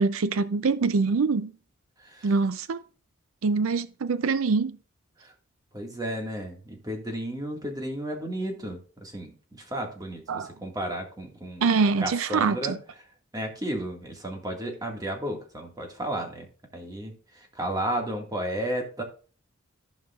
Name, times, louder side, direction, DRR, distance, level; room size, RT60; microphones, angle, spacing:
voice 1, 0.0-1.5 2.2-2.8 3.4-4.8 10.3-10.5 11.6-12.8, right 4 dB, 80° right, 0.5 m, -24 dB
voice 2, 5.7-11.6 12.0-12.8 13.3-16.5 16.7-17.1 17.6-19.0, right 1 dB, 20° right, 1.8 m, -33 dB
15.0 x 5.2 x 2.4 m
head